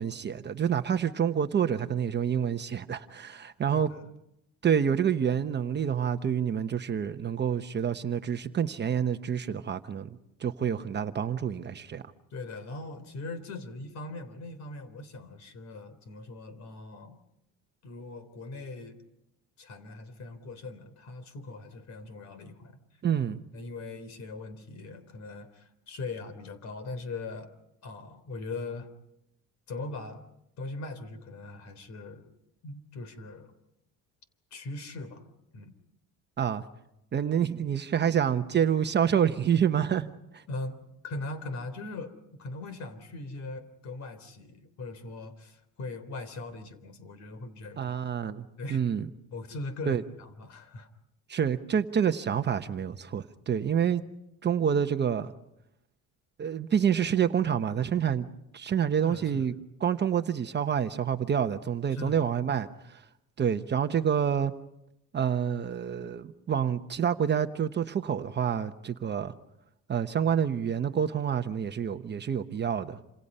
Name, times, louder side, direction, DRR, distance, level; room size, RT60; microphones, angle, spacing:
voice 1, 0.0-3.9 4.6-12.0 23.0-23.4 36.4-36.6 37.1-40.1 40.3-40.4 47.8-49.1 49.9-50.0 51.3-54.0 54.4-55.3 56.4-58.3 58.5-59.5 59.8-63.0 63.4-64.5 65.1-69.3 69.9-73.0, right 8 dB, 30° right, 1.0 m, -28 dB
voice 2, 3.7-4.1 12.3-17.2 17.8-19.0 19.6-22.8 23.5-27.5 27.8-28.9 29.7-30.2 30.6-32.3 32.6-33.5 34.5-35.8 40.5-40.8 41.0-47.9 48.6-48.8 49.3-50.9 59.0-59.5 61.9-62.3, left 2 dB, 50° left, 3.6 m, -40 dB
28.0 x 27.0 x 5.5 m
cardioid pair, 135°, 35 cm